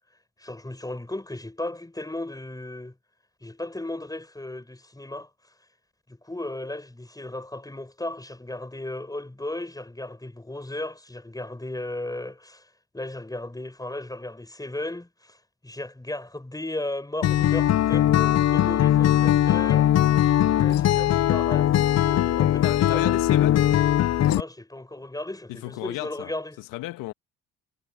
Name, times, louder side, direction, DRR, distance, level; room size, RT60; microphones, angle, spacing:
voice 1, 0.4-2.9 3.4-5.3 6.1-12.7 12.9-15.4 15.6-19.9 20.6-23.2 24.3-26.6, left 1 dB, 10° left, 6.6 m, -35 dB
Acoustic guitar, 17.2-24.4, left 12 dB, 50° left, 0.9 m, -20 dB
voice 2, 22.6-23.7 25.5-26.3 26.6-27.1, left 19 dB, 75° left, 2.1 m, -33 dB
hypercardioid pair, 50°, 33 cm